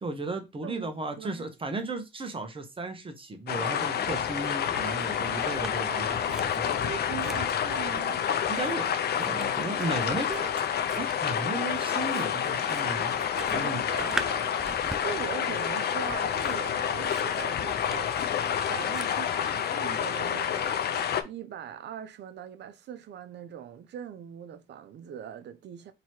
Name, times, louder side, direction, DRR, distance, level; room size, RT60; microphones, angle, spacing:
voice 1, 0.0-6.8 8.5-8.9 9.2-13.2 13.5-13.8, right 2 dB, 25° right, 0.9 m, -35 dB
voice 2, 0.6-1.4 6.8-8.3 13.4-25.9, right 9 dB, 60° right, 0.6 m, -41 dB
sound 1, 3.5-21.2, left 8 dB, 55° left, 0.5 m, -29 dB
Scissors, 4.2-5.7 6.1-19.7, equal, 5° right, 0.3 m, -42 dB
3.0 x 2.9 x 4.4 m
cardioid pair, 90°, 20 cm